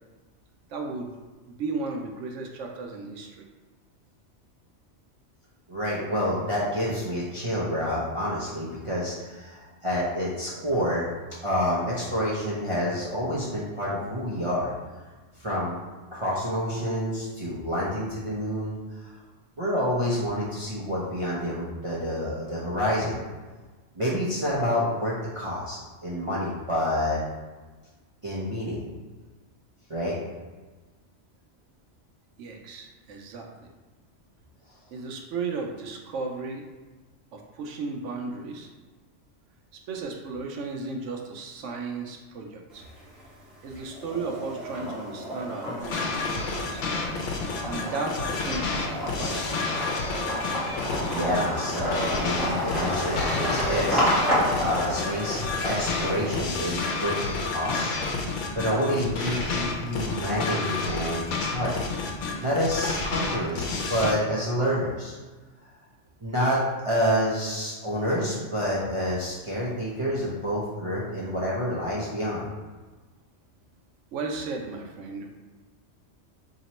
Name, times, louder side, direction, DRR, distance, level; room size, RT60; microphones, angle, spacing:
voice 1, 0.7-1.1 1.5-3.4 32.4-33.7 34.9-36.6 37.3-38.7 39.7-42.9 43.6-46.9 47.6-48.8 49.1-49.8 74.1-75.4, right 3 dB, 85° right, 2 dB, 0.9 m, -35 dB
voice 2, 5.7-11.1 11.4-14.7 15.4-15.8 16.1-19.1 19.6-23.2 24.0-27.2 28.2-28.9 29.9-30.2 51.1-54.0 54.6-57.9 58.5-61.7 62.4-65.2 66.2-72.4, equal, 35° right, -8 dB, 0.6 m, -28 dB
sound 1, 42.7-43.4 43.8-57.3, equal, ahead, 1.1 m, -31 dB
sound 2, 45.8-64.1, left 4 dB, 80° left, 1.0 m, -30 dB
2.9 x 2.9 x 4.1 m, 1.3 s
omnidirectional pair, 1.2 m